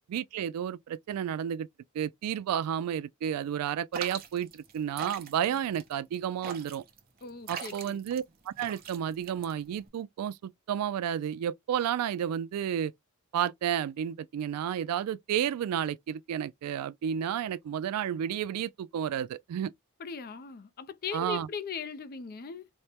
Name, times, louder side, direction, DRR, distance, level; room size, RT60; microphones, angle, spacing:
voice 1, 0.1-1.7 1.9-6.8 7.5-12.9 13.3-19.7 21.1-21.5, right 9 dB, 90° right, 0.3 m, -31 dB
sound 1, 3.9-9.9, right 6 dB, 40° right, 0.8 m, -42 dB
voice 2, 7.2-8.0 20.0-22.7, left 5 dB, 40° left, 0.4 m, -39 dB
4.2 x 2.1 x 3.3 m
head